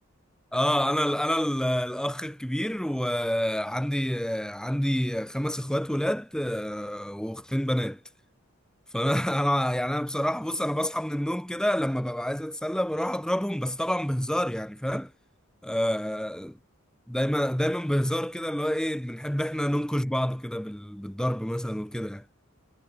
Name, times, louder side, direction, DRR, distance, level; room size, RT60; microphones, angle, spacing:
voice 1, 0.5-8.0 8.9-15.1 15.6-16.5 17.1-22.2, equal, 5° left, 1.1 m, -28 dB
head